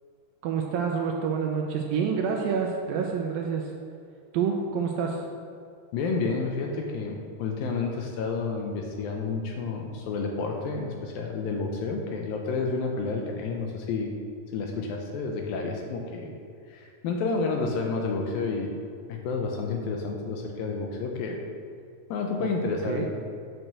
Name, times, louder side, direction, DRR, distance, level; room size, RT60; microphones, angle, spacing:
voice 1, 0.4-3.7 4.3-5.2 22.4-22.5 22.9-23.1, right 6 dB, 75° right, 1 dB, 2.3 m, -28 dB
voice 2, 5.9-14.1 14.5-16.3 16.7-18.8 19.1-21.4 22.1-23.1, left 4 dB, 75° left, 2 dB, 2.3 m, -30 dB
8.9 x 6.1 x 6.7 m, 2.4 s
omnidirectional pair, 4.7 m